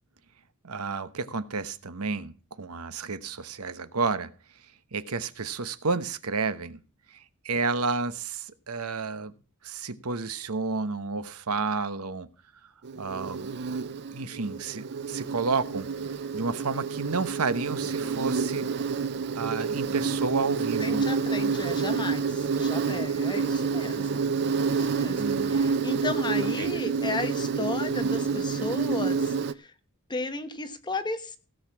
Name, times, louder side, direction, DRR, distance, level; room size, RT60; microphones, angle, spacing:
voice 1, 0.6-4.3 4.9-6.8 7.4-9.3 9.6-12.3 13.0-13.5 14.1-15.9 16.3-18.7 19.4-21.0 25.2-25.6 26.6-26.7, right 4 dB, 75° right, 1.0 m, -31 dB
Insect, 12.8-29.5, right 5 dB, 50° right, 0.5 m, -28 dB
voice 2, 20.8-29.7 30.1-31.4, left 2 dB, 20° left, 1.2 m, -34 dB
16.5 x 6.6 x 6.0 m
head